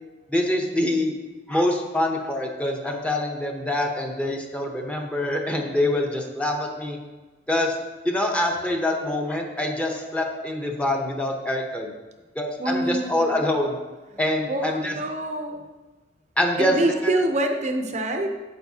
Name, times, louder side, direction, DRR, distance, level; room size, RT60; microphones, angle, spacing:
voice 1, 0.3-1.1 1.5-7.0 7.5-7.8 8.0-11.9 12.4-13.8 14.2-15.0 16.4-17.1, left 1 dB, 5° left, 1 dB, 0.8 m, -25 dB
voice 2, 12.6-13.3 14.5-15.6 16.6-18.3, right 1 dB, 40° right, 5 dB, 0.6 m, -25 dB
9.2 x 7.5 x 2.8 m, 1.2 s
head